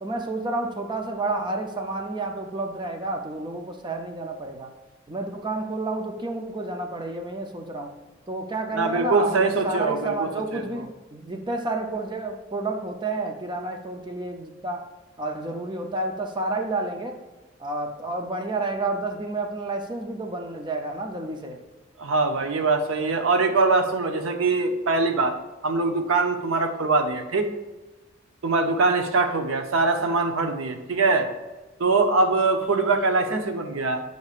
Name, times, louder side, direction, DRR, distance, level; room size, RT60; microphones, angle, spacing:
voice 1, 0.0-4.7 5.1-8.0 8.3-14.9 15.2-17.2 17.6-21.6, right 2 dB, 25° right, 4 dB, 0.5 m, -30 dB
voice 2, 8.7-10.8 22.0-25.3 25.6-27.5 28.4-31.3 31.8-34.0, right 3 dB, 85° right, 5 dB, 0.7 m, -23 dB
9.6 x 5.3 x 2.4 m, 1.1 s
head